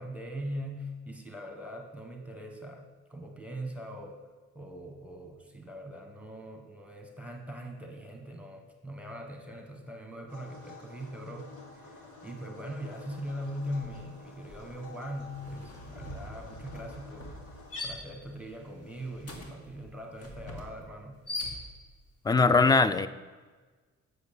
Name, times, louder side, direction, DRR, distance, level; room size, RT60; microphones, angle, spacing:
voice 1, 0.0-2.8 3.1-4.2 4.5-17.3 17.8-21.2, equal, 5° right, 3 dB, 1.5 m, -41 dB
sound 1, 10.3-17.8, left 3 dB, 80° left, 1.9 m, -51 dB
sound 2, 13.0-13.3 13.6-22.1, left 2 dB, 50° left, 2.0 m, -43 dB
voice 2, 22.3-23.1, left 4 dB, 15° left, 14 dB, 0.4 m, -21 dB
8.1 x 6.6 x 7.0 m, 1.4 s
cardioid pair, 90°, 30 cm